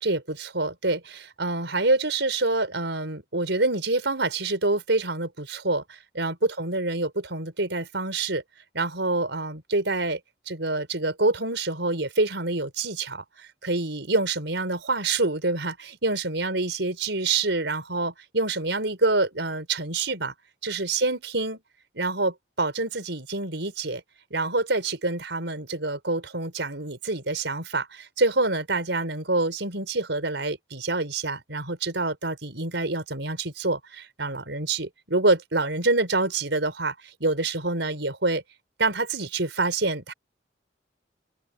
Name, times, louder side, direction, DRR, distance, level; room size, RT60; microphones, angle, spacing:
voice 1, 0.0-8.4 8.7-10.2 10.5-20.3 20.6-21.6 21.9-24.0 24.3-38.4 38.8-40.1, right 2 dB, 90° right, 5.0 m, -26 dB
open air
head